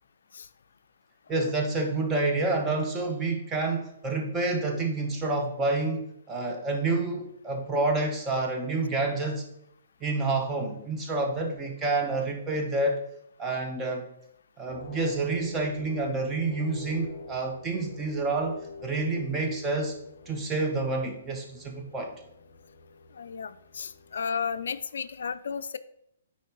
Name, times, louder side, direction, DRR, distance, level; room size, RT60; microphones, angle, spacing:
voice 1, 1.3-9.4 10.0-13.0 13.4-14.1 14.6-19.9 20.3-22.1, right 3 dB, 15° right, 2 dB, 1.0 m, -28 dB
sound 1, 14.7-24.8, left 4 dB, 15° left, 2.8 m, -46 dB
voice 2, 23.1-25.8, left 6 dB, 75° left, 13 dB, 0.3 m, -34 dB
9.1 x 4.4 x 3.0 m, 0.74 s
hypercardioid pair, 145°, 0 cm